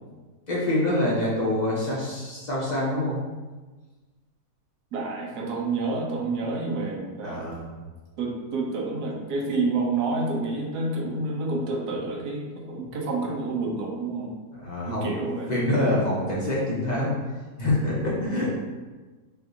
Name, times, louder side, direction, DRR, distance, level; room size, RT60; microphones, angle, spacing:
voice 1, 0.5-3.2 7.2-7.7 14.6-15.1 15.5-17.2 17.6-18.5, left 1 dB, 40° left, -6 dB, 0.6 m, -25 dB
voice 2, 4.9-7.5 8.2-14.3 14.9-15.6 18.2-18.5, right 3 dB, 70° right, 0 dB, 1.3 m, -29 dB
6.1 x 2.5 x 2.7 m, 1.3 s
omnidirectional pair, 1.8 m